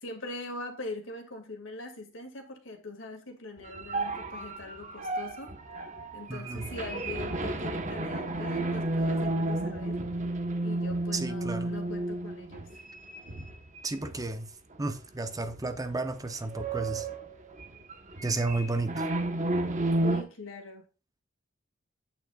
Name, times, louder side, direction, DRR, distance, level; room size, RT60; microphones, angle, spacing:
voice 1, 0.0-5.5 6.1-10.0 10.6-12.8 20.0-20.8, left 2 dB, 70° left, 2.4 m, -42 dB
sound 1, 3.6-14.3 14.7-14.9 15.5-15.9 16.1-20.2, right 2 dB, 40° right, 1.2 m, -32 dB
voice 2, 6.3-6.7 11.1-11.7 13.8-14.5 14.8-17.1 18.2-19.1, right 3 dB, 20° right, 0.7 m, -32 dB
8.9 x 8.8 x 2.4 m
head